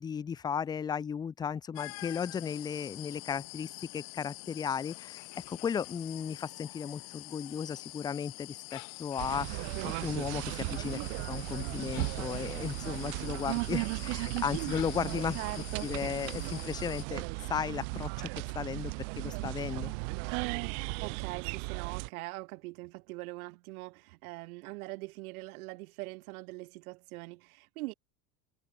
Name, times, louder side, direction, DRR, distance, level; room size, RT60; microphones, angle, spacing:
voice 1, 0.0-15.4 15.8-19.9, left 7 dB, 10° left, 0.4 m, -35 dB
sound 1, 1.7-17.1, left 30 dB, 60° left, 1.3 m, -46 dB
sound 2, 9.2-22.1, right 40 dB or more, 55° right, 0.6 m, -36 dB
voice 2, 15.3-16.2 20.7-27.9, right 23 dB, 70° right, 2.0 m, -42 dB
supercardioid pair, 140°, 45 cm